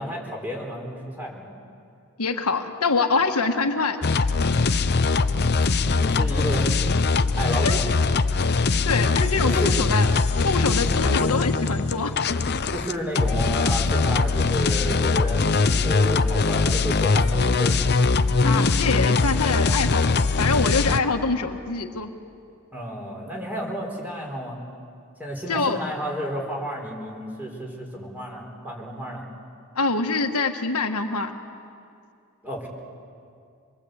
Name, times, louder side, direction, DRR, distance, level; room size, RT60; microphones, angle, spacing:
voice 1, 0.0-1.5 5.9-6.9 7.4-8.0 9.4-9.7 10.8-10.9 12.7-17.8 22.7-24.6 25.2-29.2 32.4-32.7, equal, 10° right, -1 dB, 4.5 m, -31 dB
voice 2, 2.2-4.0 7.6-7.8 8.8-10.1 10.4-12.1 18.4-22.1 25.5-25.8 29.7-31.4, left 4 dB, 85° left, 5 dB, 1.5 m, -25 dB
sound 1, 4.0-21.0, left 4 dB, 50° left, 0.7 m, -21 dB
26.5 x 22.0 x 8.2 m, 2.4 s
head